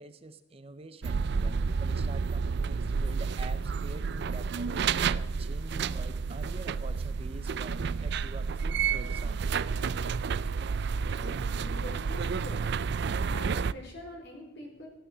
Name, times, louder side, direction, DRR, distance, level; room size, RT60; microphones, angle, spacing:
voice 1, 0.0-9.6, right 2 dB, 30° right, 11 dB, 0.7 m, -46 dB
sound 1, 1.0-13.7, right 5 dB, 60° right, 0.4 m, -30 dB
voice 2, 11.1-12.7 13.0-14.9, left 1 dB, 60° left, 1 dB, 4.5 m, -45 dB
15.0 x 12.5 x 6.2 m, 0.92 s
head